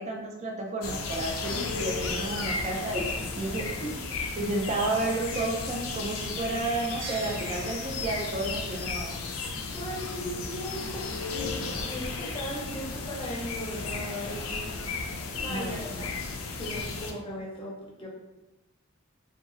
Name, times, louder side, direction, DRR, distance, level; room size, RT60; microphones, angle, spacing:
voice 1, 0.0-3.7 4.4-9.1 15.5-16.0, right 2 dB, 35° right, 0 dB, 0.4 m, -31 dB
sound 1, 0.8-17.1, left 4 dB, 85° left, 0.4 m, -34 dB
sound 2, 7.0-9.5, right 2 dB, 75° right, 0.7 m, -44 dB
voice 2, 9.7-11.1 11.5-16.2 16.6-18.1, equal, 25° left, -3 dB, 0.6 m, -38 dB
2.8 x 2.3 x 2.5 m, 1.0 s
head